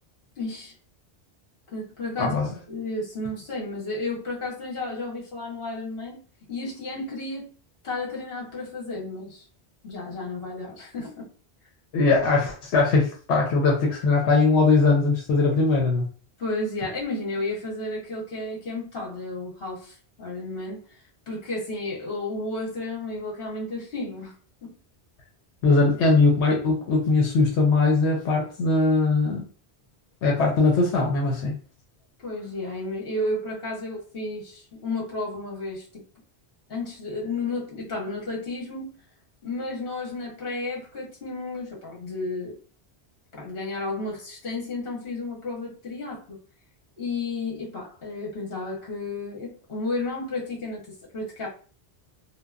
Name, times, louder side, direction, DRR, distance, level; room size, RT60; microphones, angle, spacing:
voice 1, 0.4-0.7 1.7-2.4 2.7-6.2 6.5-7.5 7.8-9.4 9.8-11.3 16.4-20.8 21.3-24.3 24.6-24.8 32.2-36.0 36.7-38.9 39.4-42.5 43.3-46.4 47.0-51.5, left 2 dB, 65° left, 1.3 m, -32 dB
voice 2, 11.9-16.1 25.6-29.4 30.2-31.6, left 3 dB, 90° left, 0.9 m, -20 dB
2.8 x 2.2 x 2.3 m
omnidirectional pair, 1.1 m